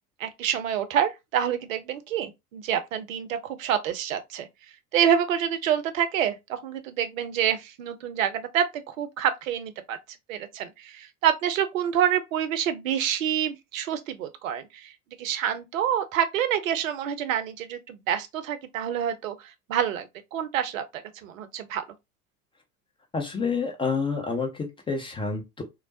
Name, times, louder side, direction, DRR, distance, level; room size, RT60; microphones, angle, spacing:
voice 1, 0.2-4.5 4.9-10.0 10.3-14.9 15.2-21.8, right 9 dB, 60° right, 0.6 m, -27 dB
voice 2, 23.1-25.6, left 4 dB, 10° left, 0.4 m, -28 dB
3.1 x 2.0 x 2.6 m
figure-of-eight pair, 75°, 45 cm